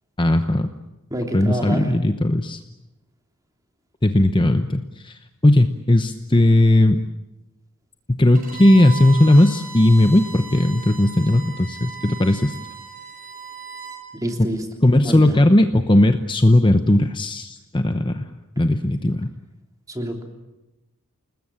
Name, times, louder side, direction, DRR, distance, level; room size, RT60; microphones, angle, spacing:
voice 1, 0.2-0.7 1.3-2.6 4.0-7.0 8.1-12.5 14.8-18.3 18.6-19.3, left 1 dB, 20° left, 8 dB, 0.9 m, -17 dB
voice 2, 1.1-1.9 14.2-14.6 15.0-15.4 19.9-20.2, right 1 dB, 15° right, 3 dB, 3.3 m, -27 dB
Bowed string instrument, 8.3-14.0, right 5 dB, 40° right, 6.9 m, -37 dB
29.0 x 20.0 x 8.8 m, 0.98 s
head